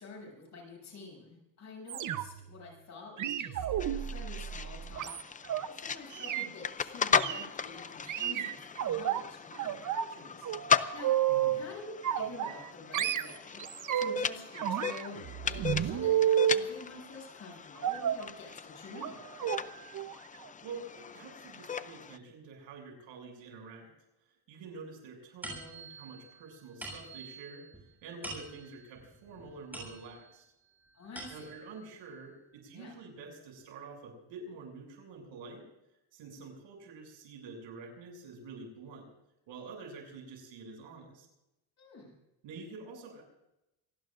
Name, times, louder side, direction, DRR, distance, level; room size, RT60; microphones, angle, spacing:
voice 1, 0.0-11.1 11.5-13.6 13.9-16.1 16.5-19.3 30.9-31.5 32.7-32.9 41.8-42.1, left 3 dB, 35° left, -2 dB, 7.9 m, -48 dB
sound 1, 1.9-2.5 3.2-5.7 6.1-6.5 7.1-7.4 8.1-9.2 9.6-10.1 10.4-11.6 12.0-12.7 12.9-14.2 14.6-16.6 17.8-18.3 18.9-19.1 19.4-19.6 19.9-20.1 20.4-20.5, right 10 dB, 40° right, 0.9 m, -31 dB
sound 2, 3.8-22.2, left 6 dB, 20° left, 0.5 m, -37 dB
voice 2, 11.3-11.7 20.6-23.9 24.5-27.7 28.0-30.4 31.3-35.6 36.1-39.1 39.5-41.3 42.4-43.2, right 4 dB, 75° right, 2 dB, 7.3 m, -47 dB
sound 3, 25.4-30.4 30.9-31.7, right 2 dB, 5° right, 7.7 m, -46 dB
27.0 x 18.5 x 2.6 m, 0.90 s
cardioid pair, 150°, 45 cm